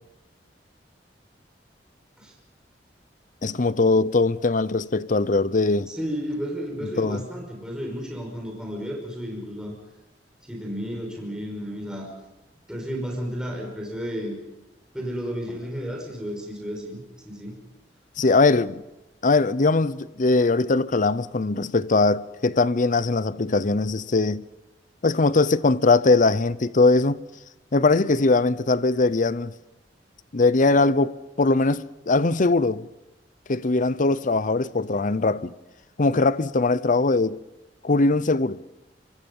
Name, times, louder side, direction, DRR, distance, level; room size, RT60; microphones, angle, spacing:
voice 1, 3.4-5.9 7.0-7.2 18.2-18.8 19.2-24.4 25.0-27.2 27.7-29.5 30.3-32.9 33.5-35.5 36.0-37.4 37.8-38.6, left 3 dB, 50° left, 0.7 m, -21 dB
voice 2, 5.9-9.7 10.5-12.1 12.7-14.4 14.9-17.6, equal, 5° right, 5.5 m, -32 dB
26.0 x 25.0 x 5.5 m
head